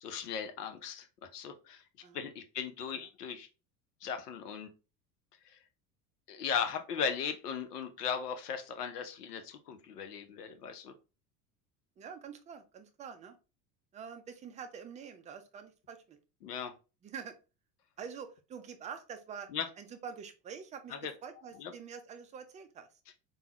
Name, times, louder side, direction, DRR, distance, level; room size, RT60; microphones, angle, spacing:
voice 1, 0.0-1.8 2.1-3.5 4.0-4.7 5.4-5.6 6.3-10.9 16.4-16.7 19.5-19.7 20.9-21.1 21.6-21.7, left 7 dB, 75° left, 7 dB, 0.8 m, -37 dB
voice 2, 12.0-13.4 13.9-16.2 17.0-17.4 18.0-19.5 19.8-22.9, right 6 dB, 15° right, 7 dB, 0.4 m, -46 dB
3.6 x 2.2 x 2.9 m, 0.31 s
figure-of-eight pair, 75°, 47 cm